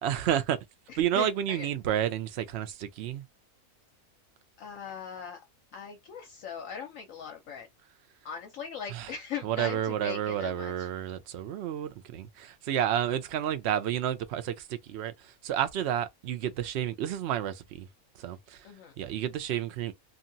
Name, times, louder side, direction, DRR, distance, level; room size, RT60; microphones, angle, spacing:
voice 1, 0.0-0.6 1.0-3.2 8.9-9.1 9.4-17.9 18.2-18.6 19.0-19.9, right 10 dB, 65° right, 0.7 m, -30 dB
voice 2, 0.9-1.7 4.6-5.4 5.7-7.7 8.2-10.9 18.6-19.0, left 7 dB, 70° left, 0.9 m, -40 dB
2.7 x 2.5 x 2.6 m
omnidirectional pair, 1.5 m